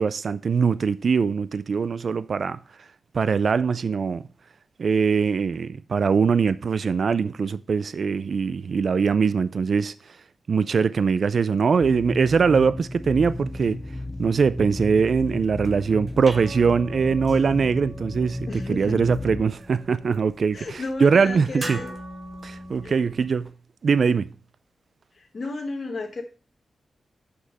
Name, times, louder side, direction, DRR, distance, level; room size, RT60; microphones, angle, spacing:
voice 1, 0.0-2.6 3.1-4.2 4.8-9.9 10.5-13.8 14.2-21.8 22.4-23.5 23.8-24.3, right 5 dB, 60° right, 0.3 m, -22 dB
sound 1, 11.8-19.4, left 1 dB, 15° left, 0.5 m, -33 dB
sound 2, 15.5-23.5, right 1 dB, 30° right, 1.1 m, -41 dB
voice 2, 18.5-19.0 20.5-21.9 22.8-23.0 25.1-26.2, left 3 dB, 50° left, 1.0 m, -33 dB
6.2 x 5.9 x 5.2 m
wide cardioid pair, 115°, 0 cm